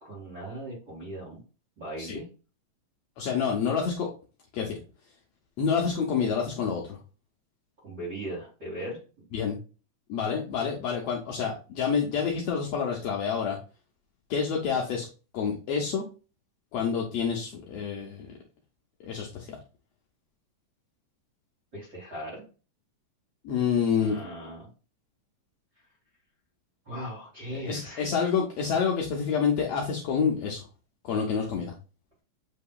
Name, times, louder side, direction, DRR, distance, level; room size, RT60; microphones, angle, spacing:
voice 1, 0.0-1.4 1.8-2.2 7.8-9.0 21.7-22.4 23.9-24.7 26.9-28.1, right 1 dB, 35° right, -7 dB, 1.9 m, -38 dB
voice 2, 3.2-4.1 4.5-4.8 5.6-7.0 9.3-9.6 10.1-13.6 14.3-15.1 15.3-16.0 16.7-18.3 19.0-19.6 23.4-24.2 27.6-30.7 31.0-31.7, left 6 dB, 85° left, 0 dB, 1.4 m, -28 dB
7.6 x 2.8 x 2.3 m, 0.34 s
omnidirectional pair, 3.7 m